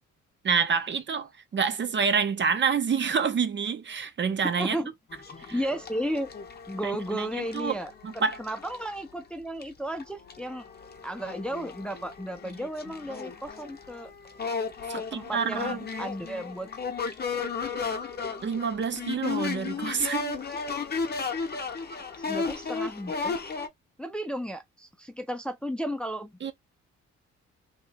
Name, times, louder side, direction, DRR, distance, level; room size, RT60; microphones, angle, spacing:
voice 1, 0.4-4.8 5.4-5.6 6.8-8.4 14.9-15.8 18.4-20.4 26.4-26.5, right 6 dB, 40° right, 0.6 m, -28 dB
voice 2, 4.6-4.9 5.4-6.3 6.7-10.6 11.0-14.1 15.0-16.7 22.2-23.4 24.0-26.3, equal, 5° left, 0.5 m, -34 dB
sound 1, 5.1-9.0 9.6-9.7 10.0-23.7, left 5 dB, 35° left, 0.8 m, -35 dB
2.9 x 2.7 x 2.8 m
cardioid pair, 90°, 30 cm